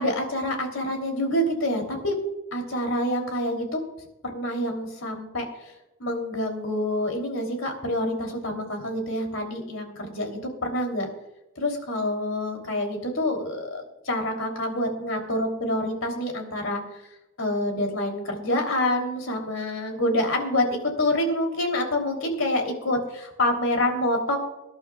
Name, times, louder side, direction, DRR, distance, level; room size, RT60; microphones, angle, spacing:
voice 1, 0.0-2.2 2.5-3.8 4.2-5.4 6.0-11.1 11.6-16.8 17.4-24.4, left 1 dB, 80° left, 3 dB, 3.1 m, -27 dB
24.0 x 11.5 x 2.3 m, 0.95 s
head